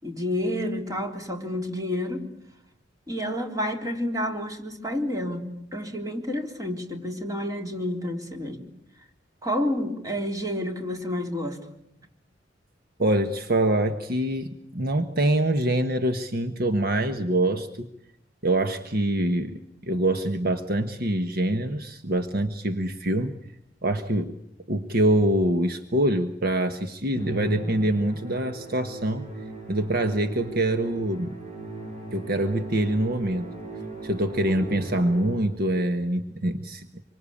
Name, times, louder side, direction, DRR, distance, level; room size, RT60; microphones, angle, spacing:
voice 1, 0.0-2.3 3.1-8.6 9.4-11.6 34.5-34.8, left 1 dB, 20° right, 3 dB, 3.6 m, -30 dB
voice 2, 13.0-17.9 18.4-23.4 23.8-24.4 24.7-29.3 29.7-31.3 32.1-33.5 34.0-36.9, right 1 dB, 55° right, 7 dB, 1.4 m, -25 dB
Musical instrument, 27.2-35.7, right 2 dB, 40° right, 7.7 m, -38 dB
26.0 x 25.0 x 8.6 m, 0.76 s
head